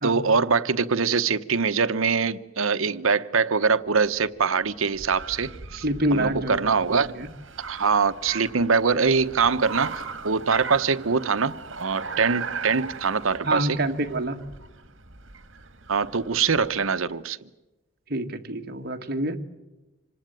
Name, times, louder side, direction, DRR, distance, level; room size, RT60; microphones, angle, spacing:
voice 1, 0.0-5.8 6.1-7.2 7.7-13.8 15.9-17.4, right 5 dB, 85° right, 0.9 m, -23 dB
Car, 4.1-16.9, right 5 dB, 65° right, 2.0 m, -38 dB
voice 2, 5.8-6.7 7.1-7.3 13.4-14.4 18.1-19.4, right 1 dB, 50° right, 1.8 m, -26 dB
26.5 x 19.5 x 9.1 m
head